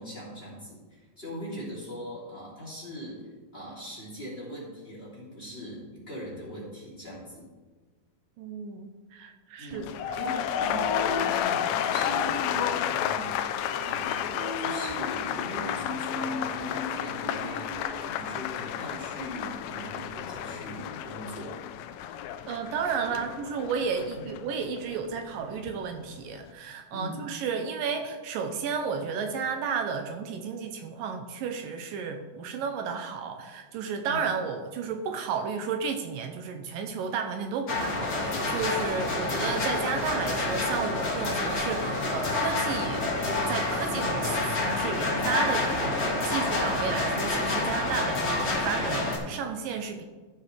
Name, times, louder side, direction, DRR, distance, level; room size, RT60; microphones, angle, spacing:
voice 1, 0.0-3.3 3.5-7.5 9.6-21.6 23.1-23.2 24.1-24.3 26.9-27.3 34.0-34.3 43.9-44.1, equal, 20° left, -6 dB, 2.6 m, -40 dB
voice 2, 8.4-9.8 22.5-50.0, right 6 dB, 80° right, 6 dB, 2.3 m, -32 dB
sound 1, 9.7-25.8 26.1-26.5, left 9 dB, 85° left, 2.3 m, -32 dB
Female singing, 10.6-18.3, equal, 55° right, 1.8 m, -39 dB
sound 2, 37.7-49.2, left 2 dB, 40° left, 1.6 m, -28 dB
14.5 x 7.2 x 3.3 m, 1.3 s
omnidirectional pair, 4.0 m